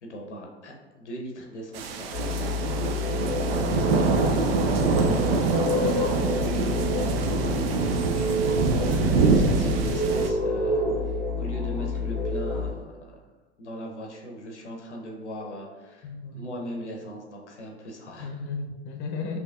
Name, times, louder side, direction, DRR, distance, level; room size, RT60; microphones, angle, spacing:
voice 1, 0.0-2.3 4.7-5.4 5.8-7.3 7.9-13.2 13.6-16.1 16.3-18.3, equal, 85° left, 1 dB, 0.7 m, -39 dB
sound 1, 1.7-10.3, right 4 dB, 60° right, 0.5 m, -25 dB
sound 2, 2.1-12.7, left 2 dB, ahead, 1.1 m, -28 dB
voice 2, 4.1-4.5 10.5-10.8 16.0-16.6 18.2-19.4, left 4 dB, 35° left, 2 dB, 0.7 m, -35 dB
5.2 x 3.0 x 2.3 m, 1.2 s
figure-of-eight pair, 85°, 34 cm